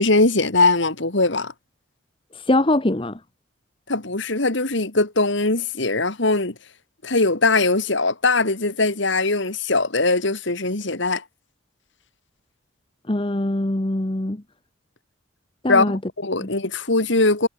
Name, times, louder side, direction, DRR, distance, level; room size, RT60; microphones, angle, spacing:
voice 1, 0.0-1.5 3.9-6.5 7.0-11.2 15.7-17.5, left 3 dB, 65° left, 2.4 m, -21 dB
voice 2, 2.3-3.2 13.1-14.4 15.6-16.0 16.4-16.5, left 1 dB, 25° left, 1.1 m, -22 dB
head